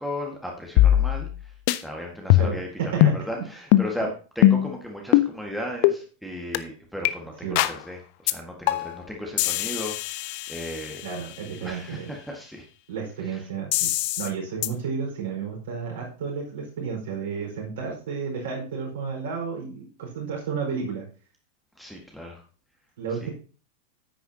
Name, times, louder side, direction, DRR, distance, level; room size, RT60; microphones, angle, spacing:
voice 1, 0.0-11.1 11.6-12.7 13.2-13.4 21.8-22.4, left 1 dB, ahead, 0 dB, 1.7 m, -36 dB
sound 1, 0.8-1.4 1.7-1.8 2.3-2.7 3.0-3.2 3.7-3.9 4.4-4.7 5.1-5.3 5.8-6.0 6.5-6.6 7.0-7.1 7.6-7.8 8.3-8.4 8.7-9.0 9.4-11.2 13.7-14.3 14.6-14.7, left 14 dB, 45° left, 0.6 m, -21 dB
voice 2, 2.4-3.4 7.4-7.6 11.0-12.1 12.9-21.0 23.0-23.3, right 6 dB, 60° right, -1 dB, 4.9 m, -32 dB
10.0 x 9.1 x 2.9 m, 0.38 s
figure-of-eight pair, 90°, 0 cm